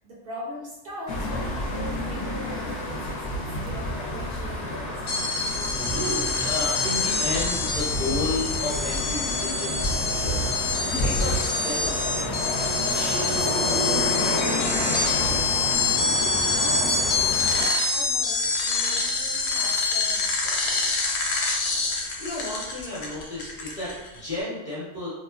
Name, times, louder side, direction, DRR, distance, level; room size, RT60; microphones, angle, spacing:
voice 1, 0.0-5.2 13.4-16.2 16.5-17.3 17.5-20.8, equal, 65° right, -4 dB, 0.7 m, -40 dB
sound 1, 1.1-17.7, left 1 dB, 85° left, 0.9 m, -29 dB
sound 2, 5.1-24.2, left 3 dB, 60° left, 0.6 m, -26 dB
voice 2, 5.8-13.0 22.2-25.1, left 2 dB, 35° left, -7 dB, 0.9 m, -33 dB
2.9 x 2.0 x 2.3 m, 1.0 s
omnidirectional pair, 1.2 m